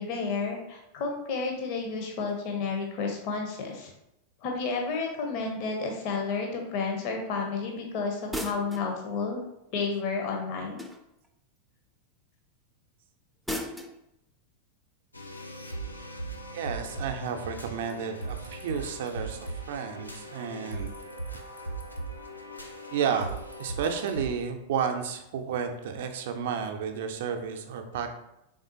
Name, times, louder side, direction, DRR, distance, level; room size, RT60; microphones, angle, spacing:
voice 1, 0.0-3.9 4.4-9.4 9.7-10.9, left 4 dB, 45° left, 2 dB, 0.6 m, -31 dB
sound 1, 8.3-8.9 10.8-11.3 13.5-14.0, equal, ahead, 0.4 m, -35 dB
sound 2, 15.1-24.3, right 2 dB, 85° left, 0.5 m, -39 dB
voice 2, 16.5-20.9 22.9-23.3 23.6-28.1, right 7 dB, 55° right, 6 dB, 0.5 m, -32 dB
3.6 x 3.5 x 2.7 m, 0.86 s
figure-of-eight pair, 90°, 0 cm